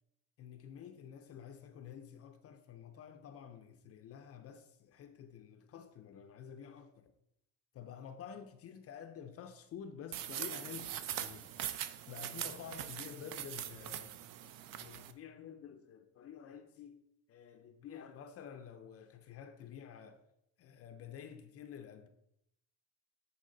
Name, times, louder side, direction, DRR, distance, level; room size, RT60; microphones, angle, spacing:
voice 1, 0.4-7.1 7.7-11.5 12.1-20.2 20.6-22.1, left 8 dB, 35° left, 0.5 m, -50 dB
sound 1, 10.1-15.1, right 11 dB, 55° right, 0.6 m, -42 dB
9.5 x 4.9 x 3.8 m
cardioid pair, 155°, 40 cm